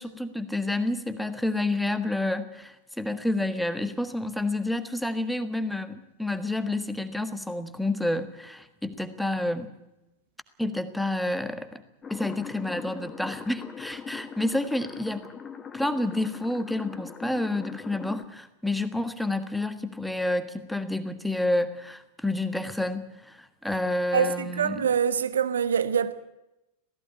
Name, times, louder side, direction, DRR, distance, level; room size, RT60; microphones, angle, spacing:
voice 1, 0.0-9.7 10.6-11.8 12.1-15.3 15.7-24.9, left 1 dB, ahead, 1.5 m, -29 dB
sound 1, 12.0-18.2, left 6 dB, 20° left, 1.5 m, -41 dB
voice 2, 24.1-26.1, right 7 dB, 65° right, 1.1 m, -25 dB
17.5 x 15.0 x 9.8 m
figure-of-eight pair, 90°, 0 cm